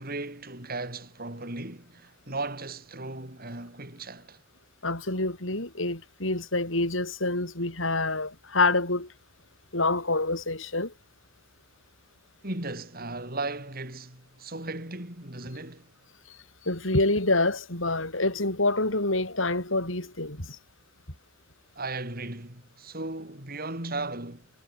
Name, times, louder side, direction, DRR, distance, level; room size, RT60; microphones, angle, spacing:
voice 1, 0.0-4.4 12.4-15.9 21.8-24.5, right 2 dB, 50° right, 7.1 m, -36 dB
voice 2, 4.8-9.1 9.7-10.9 16.7-20.5, left 2 dB, 85° left, 7.7 m, -27 dB
head